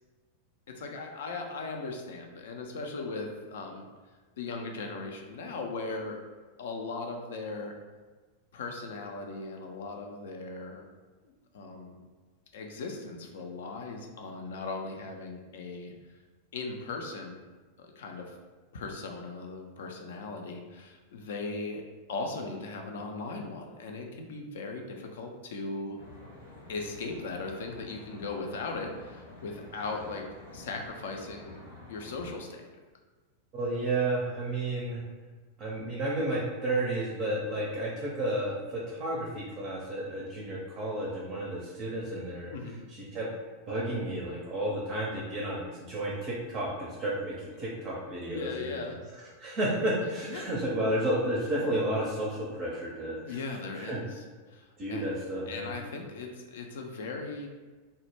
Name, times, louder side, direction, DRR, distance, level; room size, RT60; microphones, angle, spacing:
voice 1, 0.8-3.9 4.4-6.2 6.6-7.7 8.5-10.8 11.2-12.0 12.5-15.9 16.5-17.4 17.8-18.4 18.7-21.8 22.1-26.0 26.7-30.3 30.5-31.5 31.9-32.7 42.5-42.8 48.1-49.0 50.2-50.6 53.2-55.1 55.5-57.5, left 3 dB, 60° left, 3 dB, 0.3 m, -38 dB
Traffic noise roadway noise, 26.0-32.4, left 2 dB, 80° left, 0.8 m, -50 dB
voice 2, 33.5-35.0 35.6-42.5 42.9-43.3 43.7-48.7 49.4-53.4 53.7-54.0 54.8-55.7, right 1 dB, 35° right, -4 dB, 0.4 m, -32 dB
2.1 x 2.0 x 3.1 m, 1.3 s
figure-of-eight pair, 90°, 0 cm